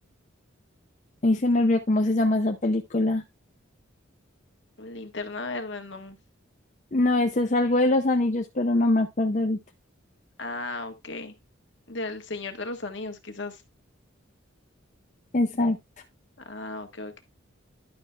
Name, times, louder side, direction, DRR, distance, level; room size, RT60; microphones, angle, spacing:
voice 1, 1.2-3.2 6.9-9.6 15.3-15.8, left 2 dB, 40° left, 0.7 m, -23 dB
voice 2, 4.8-6.2 10.4-11.3 11.9-13.6 16.4-17.2, left 2 dB, 60° left, 1.5 m, -35 dB
11.0 x 5.8 x 3.4 m
head